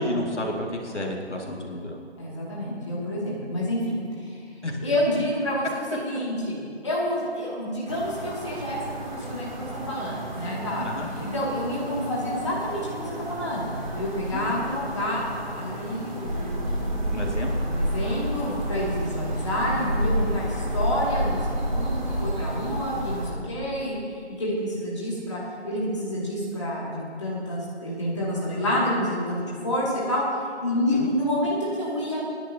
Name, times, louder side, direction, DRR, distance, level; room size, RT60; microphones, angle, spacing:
voice 1, 0.0-2.0 4.6-4.8 10.8-11.1 14.3-14.6 17.1-17.5 30.9-31.1, left 1 dB, 85° left, 0 dB, 2.3 m, -30 dB
voice 2, 2.2-4.4 4.8-10.8 11.3-13.7 13.9-15.2 15.5-17.2 17.7-32.2, left 1 dB, 25° left, -7 dB, 2.4 m, -29 dB
sound 1, 7.9-23.3, equal, 40° right, 2.6 m, -30 dB
27.5 x 10.0 x 2.9 m, 2.2 s
figure-of-eight pair, 175°, 34 cm